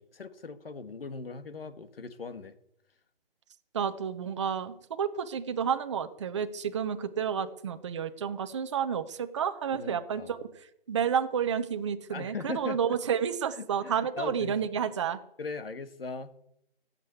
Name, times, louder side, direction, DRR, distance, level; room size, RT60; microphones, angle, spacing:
voice 1, 0.0-2.5 9.7-10.3 12.1-13.0 13.6-14.6 15.4-16.3, left 4 dB, 75° left, 10 dB, 1.9 m, -39 dB
voice 2, 3.7-10.5 10.9-15.2, right 7 dB, 30° right, 9 dB, 0.9 m, -30 dB
16.5 x 7.7 x 8.2 m, 0.78 s
hypercardioid pair, 165°, 30 cm